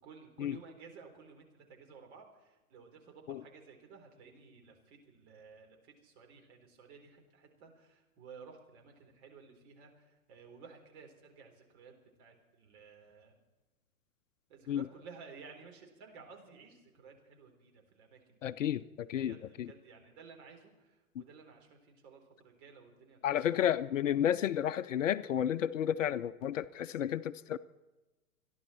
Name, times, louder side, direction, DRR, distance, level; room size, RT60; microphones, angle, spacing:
voice 1, 0.0-11.9 12.2-13.4 14.5-18.4 19.2-23.2, right 5 dB, 45° right, 3 dB, 4.0 m, -55 dB
voice 2, 18.4-19.7 23.2-27.6, left 10 dB, 55° left, 15 dB, 0.6 m, -32 dB
27.5 x 11.0 x 4.3 m, 1.1 s
figure-of-eight pair, 115°, 45 cm